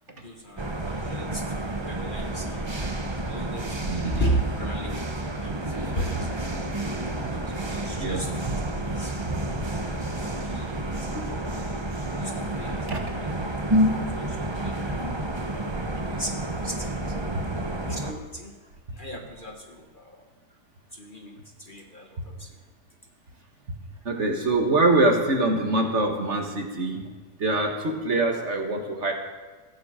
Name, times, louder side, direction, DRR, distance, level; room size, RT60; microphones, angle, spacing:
voice 1, 0.1-2.9 3.2-6.6 7.2-8.4 9.0-9.3 10.4-11.8 12.1-12.9 13.1-13.6 14.1-15.3 16.0-18.5 18.9-20.2 20.9-22.5, right 1 dB, 35° left, 2 dB, 1.3 m, -36 dB
sound 1, 0.6-18.1, right 1 dB, 20° right, 0.8 m, -30 dB
voice 2, 3.8-4.2 8.0-8.3 12.9-13.0 14.2-14.4 24.1-27.1 27.4-29.1, right 2 dB, 45° right, 3 dB, 1.8 m, -24 dB
15.0 x 13.0 x 5.1 m, 1.3 s
omnidirectional pair, 1.7 m